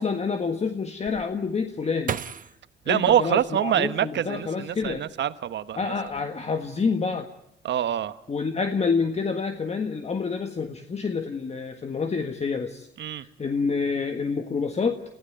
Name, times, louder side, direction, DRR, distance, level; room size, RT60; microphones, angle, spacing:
voice 1, 0.0-2.1 2.8-5.0 5.8-7.3 8.3-12.9 13.1-15.0, left 5 dB, 35° left, 6 dB, 1.6 m, -28 dB
sound 1, 1.1-4.1 4.7-5.4 5.7-6.2, right 7 dB, 45° right, 1.0 m, -37 dB
voice 2, 2.9-5.9 7.6-8.2 13.0-13.2, right 10 dB, 65° right, 13 dB, 1.2 m, -25 dB
29.0 x 16.0 x 9.1 m, 0.81 s
cardioid pair, 90°, 20 cm